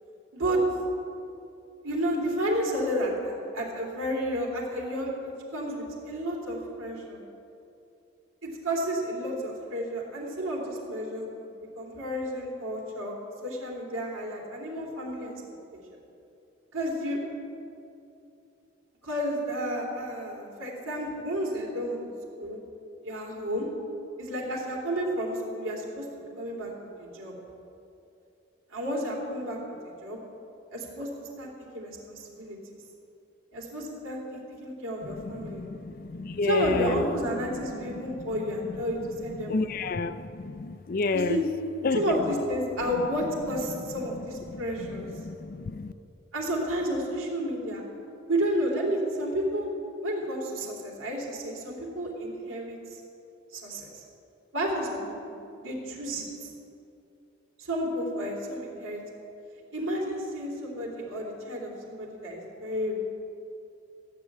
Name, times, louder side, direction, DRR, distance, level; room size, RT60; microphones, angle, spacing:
voice 1, 1.8-7.2 8.4-11.5 11.7-13.1 13.4-15.3 15.7-15.8 16.7-17.2 19.0-22.1 22.4-22.6 23.0-23.7 24.2-26.7 27.0-27.3 28.7-29.6 30.0-30.2 30.7-31.1 31.4-32.6 33.5-35.7 36.4-39.8 41.1-41.4 41.9-45.1 46.3-47.8 48.3-49.7 50.0-53.0 53.5-53.9 54.5-56.5 57.6-59.0 59.7-62.9, equal, 85° right, -2 dB, 3.2 m, -31 dB
voice 2, 35.0-37.2 37.5-37.6 37.9-38.2 38.7-38.8 39.4-41.4 41.8-42.2 43.7-44.2 44.5-45.9, left 3 dB, 45° left, 12 dB, 0.4 m, -31 dB
15.0 x 6.8 x 9.7 m, 2.8 s
head